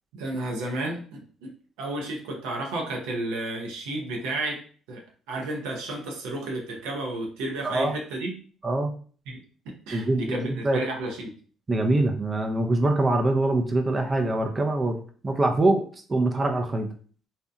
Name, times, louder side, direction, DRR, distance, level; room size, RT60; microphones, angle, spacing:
voice 1, 0.1-1.5 1.8-4.6 4.9-5.0 5.3-8.3 9.3-9.4 9.9-11.3, right 2 dB, 80° right, 0 dB, 0.6 m, -32 dB
voice 2, 7.6-8.0 8.6-8.9 9.9-10.8 11.7-15.0 15.2-15.8 16.1-16.9, right 2 dB, 30° right, 3 dB, 0.4 m, -24 dB
2.7 x 2.1 x 2.4 m, 0.43 s
hypercardioid pair, 55°, 0 cm